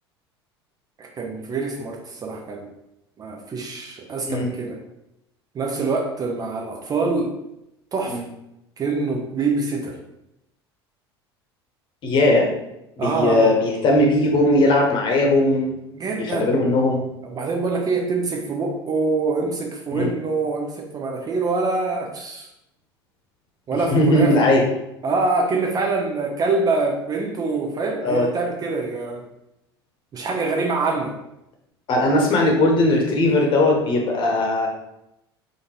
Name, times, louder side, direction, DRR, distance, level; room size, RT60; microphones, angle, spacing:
voice 1, 1.0-2.7 3.2-4.8 5.5-7.3 7.9-8.2 8.8-10.0 13.0-13.5 15.9-16.5 17.2-22.5 23.7-24.4 25.0-29.2 30.1-31.1, right 3 dB, 30° right, 1 dB, 0.7 m, -25 dB
voice 2, 12.0-12.5 13.0-15.7 16.2-17.0 19.9-20.1 23.9-24.6 28.0-28.3 31.9-34.7, left 1 dB, 35° left, 0 dB, 1.1 m, -18 dB
5.0 x 2.6 x 3.1 m, 0.85 s
figure-of-eight pair, 70°, 13 cm